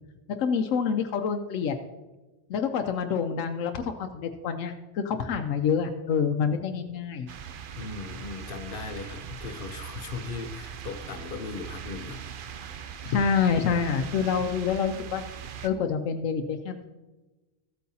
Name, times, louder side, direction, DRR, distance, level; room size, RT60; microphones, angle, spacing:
voice 1, 0.4-1.7 2.5-7.3 13.0-15.2 15.6-16.9, left 6 dB, 85° left, 5 dB, 1.0 m, -27 dB
sound 1, 7.3-15.7, right 8 dB, 55° right, 0.6 m, -40 dB
voice 2, 7.8-12.3, left 4 dB, 50° left, 8 dB, 0.8 m, -38 dB
14.5 x 8.4 x 2.7 m, 1.2 s
omnidirectional pair, 1.3 m